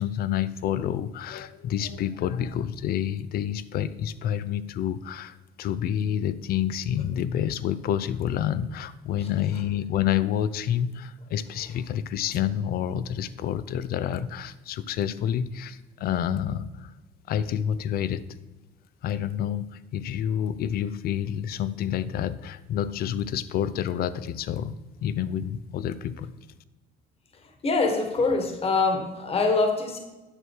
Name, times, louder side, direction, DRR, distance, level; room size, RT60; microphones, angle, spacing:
voice 1, 0.0-16.9 17.3-18.3 19.0-24.7 25.0-26.3, left 10 dB, 65° left, 16 dB, 0.5 m, -28 dB
voice 2, 27.6-30.0, left 3 dB, 35° left, 5 dB, 1.5 m, -24 dB
9.8 x 6.2 x 4.7 m, 1.1 s
cardioid pair, 110°, 17 cm